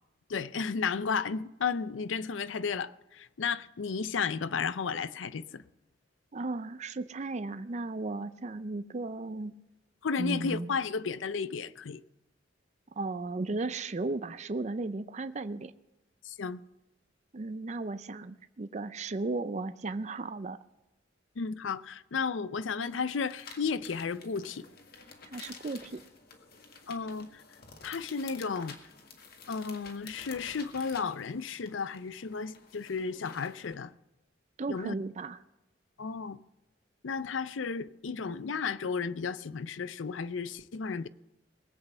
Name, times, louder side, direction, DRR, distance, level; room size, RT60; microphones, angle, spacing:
voice 1, 0.3-5.6 10.0-12.0 16.2-16.6 21.4-24.7 26.9-27.4 27.8-28.8 29.5-33.9 34.7-34.9 36.0-36.4 37.0-41.1, left 5 dB, 85° left, 0.5 m, -33 dB
voice 2, 6.3-9.5 10.2-10.7 13.0-15.7 17.3-20.6 25.3-26.0 34.6-35.4, right 3 dB, 40° right, 0.5 m, -35 dB
sound 1, 22.8-33.7, left 5 dB, 55° left, 1.8 m, -51 dB
21.0 x 8.3 x 5.5 m
head